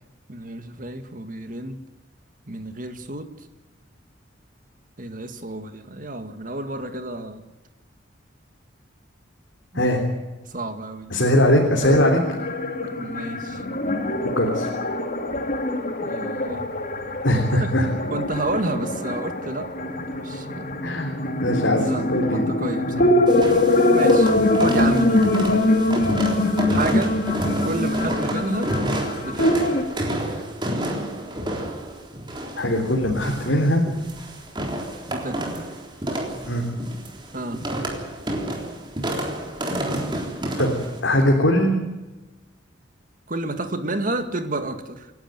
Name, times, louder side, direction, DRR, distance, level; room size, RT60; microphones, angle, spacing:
voice 1, 0.3-1.8 2.5-3.3 5.0-7.4 9.8-9.9 10.5-11.2 12.8-13.6 16.0-16.6 17.5-17.7 18.1-20.8 21.8-23.1 23.9-25.3 26.7-27.2 27.6-28.7 29.2-29.8 35.1-35.7 37.3-37.6 43.3-45.1, right 2 dB, 45° right, 8 dB, 2.1 m, -30 dB
voice 2, 11.1-12.2 14.2-14.7 17.2-17.9 20.8-21.1 21.4-22.5 22.9-23.1 23.7-23.8 24.0-24.1 32.6-33.8 36.4-36.7 40.6-41.7, left 1 dB, 70° left, 0 dB, 3.5 m, -21 dB
sound 1, 11.8-29.8, left 1 dB, 45° left, 2.4 m, -23 dB
sound 2, 23.3-41.0, right 1 dB, 25° right, 3.7 m, -29 dB
28.0 x 12.0 x 9.3 m, 1.1 s
head